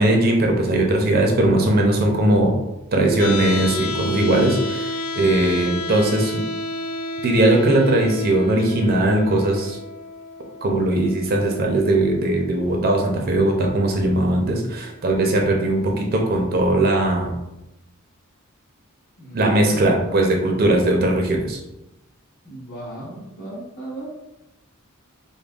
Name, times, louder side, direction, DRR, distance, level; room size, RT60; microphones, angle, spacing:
voice 1, 0.0-2.5 2.9-6.4 7.2-9.8 10.6-17.3 19.3-21.6, right 1 dB, 45° right, 1 dB, 0.6 m, -19 dB
sound 1, 3.2-15.2, left 1 dB, 85° left, 0.5 m, -32 dB
voice 2, 19.2-20.1 22.4-24.2, right 1 dB, 50° left, -11 dB, 1.1 m, -36 dB
5.0 x 2.2 x 2.3 m, 0.92 s
head